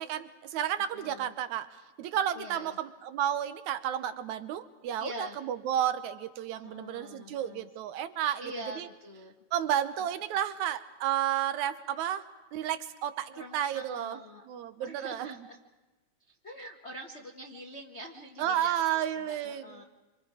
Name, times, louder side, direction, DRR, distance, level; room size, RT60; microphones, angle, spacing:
voice 1, 0.0-1.7 2.0-8.9 9.5-12.3 12.5-14.2 14.5-15.5 18.4-19.9, right 10 dB, 85° right, 11 dB, 2.3 m, -32 dB
voice 2, 0.9-1.3 2.3-2.8 5.0-5.4 6.6-7.7 8.4-9.3 13.3-14.5 14.8-15.6 16.3-19.8, equal, 60° left, 2 dB, 0.7 m, -45 dB
27.0 x 26.0 x 4.9 m, 1.2 s
omnidirectional pair, 3.3 m